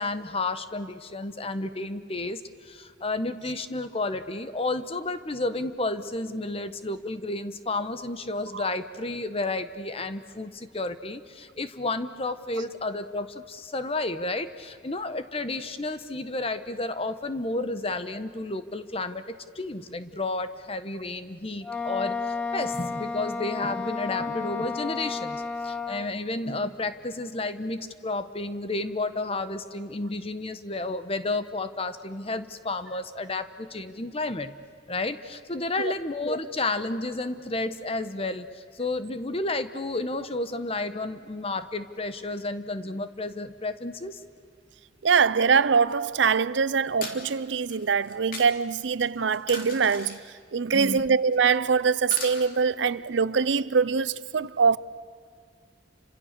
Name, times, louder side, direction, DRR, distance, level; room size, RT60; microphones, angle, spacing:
voice 1, 0.0-34.6 34.9-44.2 50.7-51.0, left 2 dB, 30° left, 1.1 m, -31 dB
Wind instrument woodwind instrument, 21.6-26.2, left 4 dB, 10° left, 1.0 m, -32 dB
voice 2, 45.0-50.2 50.5-54.8, right 5 dB, 75° right, 0.6 m, -23 dB
sound 1, 45.9-46.0 46.9-47.2 47.7-48.5 49.0-50.2 50.7-51.0 51.3-51.7 51.9-52.4, left 4 dB, 50° left, 3.2 m, -38 dB
29.5 x 26.0 x 6.8 m
head